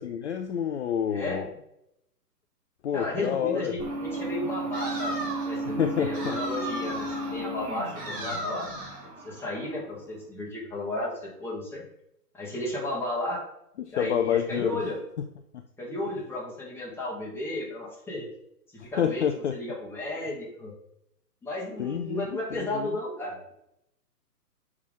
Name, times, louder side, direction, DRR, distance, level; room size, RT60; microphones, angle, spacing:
voice 1, 0.0-1.5 2.8-3.7 5.6-6.4 8.2-8.4 13.8-14.8 19.0-19.6 21.8-23.0, left 8 dB, 45° left, 6 dB, 0.5 m, -28 dB
voice 2, 2.9-8.7 9.2-11.8 12.3-13.4 13.9-15.0 15.8-18.3 18.7-19.3 19.5-20.7 21.4-23.4, left 1 dB, 5° left, -5 dB, 1.7 m, -33 dB
sound 1, 3.8-10.2, right 2 dB, 40° right, 2.2 m, -34 dB
sound 2, 4.7-5.6 6.1-7.4 8.0-9.0, right 1 dB, 15° right, 2.0 m, -36 dB
7.2 x 4.8 x 3.6 m, 0.80 s
figure-of-eight pair, 135°, 48 cm